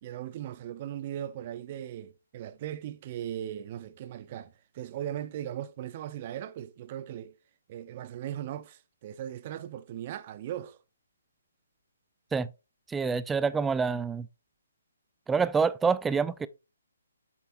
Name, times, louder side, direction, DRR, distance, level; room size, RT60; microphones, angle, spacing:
voice 1, 0.0-7.3 7.7-10.8, right 11 dB, 35° right, 0.7 m, -38 dB
voice 2, 12.9-14.3 15.3-16.5, right 5 dB, 10° right, 0.4 m, -27 dB
7.3 x 6.9 x 2.6 m
figure-of-eight pair, 145°, 0 cm